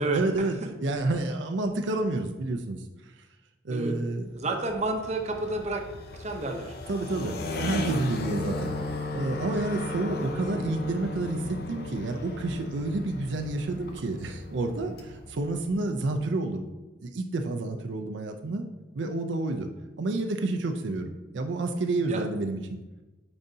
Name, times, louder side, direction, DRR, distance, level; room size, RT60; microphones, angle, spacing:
voice 1, 0.1-2.8 3.6-4.5 6.9-8.7 9.1-16.7 17.0-18.7 18.9-19.7 20.0-22.6, right 2 dB, 80° right, 4 dB, 0.5 m, -29 dB
voice 2, 4.3-5.8 6.2-6.7 22.1-22.2, right 2 dB, 40° right, 4 dB, 0.7 m, -29 dB
sound 1, 4.4-16.0, left 2 dB, 55° left, 0.6 m, -36 dB
9.0 x 3.9 x 2.7 m, 1.1 s
head